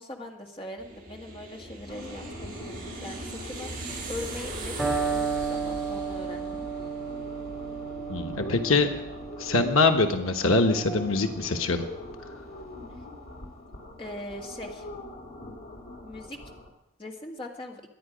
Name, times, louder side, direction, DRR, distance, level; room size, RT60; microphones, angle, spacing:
voice 1, 0.0-6.6 14.0-14.9 16.0-16.4 17.0-17.8, left 1 dB, 25° left, 0 dB, 1.7 m, -41 dB
airplane pass overhead close bright +car pass, 0.8-9.3, right 2 dB, 40° right, 6.3 m, -41 dB
sound 1, 1.9-16.7, left 1 dB, 60° left, 2.5 m, -43 dB
Electric guitar, 4.8-12.6, right 5 dB, 5° left, 2.9 m, -34 dB
voice 2, 8.1-8.9 9.4-11.8, left 3 dB, 85° left, 5 dB, 1.2 m, -23 dB
23.5 x 9.3 x 5.1 m, 0.86 s
head